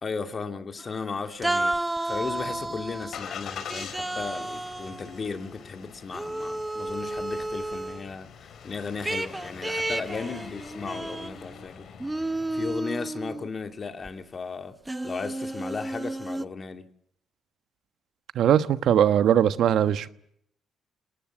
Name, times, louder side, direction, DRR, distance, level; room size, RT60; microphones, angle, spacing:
voice 1, 0.0-1.8 2.0-11.9 12.5-14.8 15.0-16.9, left 4 dB, 40° left, 2.5 m, -35 dB
sound 1, 0.8-1.1 1.4-3.2 3.7-5.7 6.1-8.1 9.0-11.6 12.0-13.5 14.0-14.1 14.9-16.5, right 2 dB, 10° right, 0.9 m, -32 dB
Engine starting, 2.1-12.8, left 7 dB, 65° left, 3.6 m, -44 dB
voice 2, 18.3-20.1, right 10 dB, 75° right, 1.2 m, -20 dB
29.5 x 19.5 x 7.4 m
cardioid pair, 90°, 0 cm